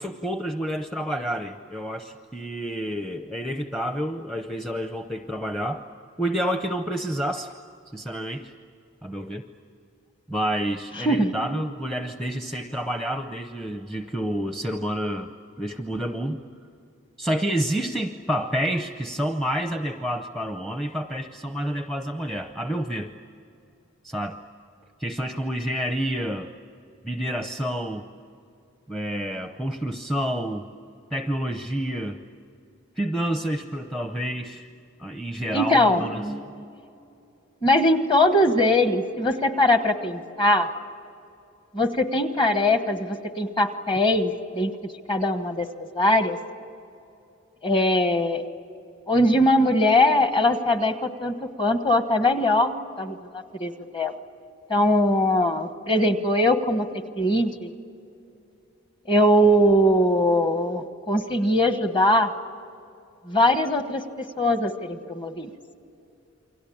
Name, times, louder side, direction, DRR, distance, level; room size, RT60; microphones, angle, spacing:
voice 1, 0.0-5.8 6.2-7.5 7.9-8.5 9.0-9.4 10.3-16.4 17.2-23.1 24.0-24.4 25.0-26.5 27.0-28.1 28.9-30.7 31.1-32.2 33.0-34.7 35.0-36.6, equal, ahead, 6 dB, 0.7 m, -29 dB
voice 2, 11.0-11.3 35.5-36.0 37.6-40.7 41.7-46.4 47.6-48.4 49.1-52.7 53.0-54.1 54.7-56.9 57.2-57.7 59.1-62.3 63.3-65.5, left 1 dB, 25° left, 8 dB, 1.2 m, -21 dB
29.0 x 23.5 x 8.6 m, 2.7 s
head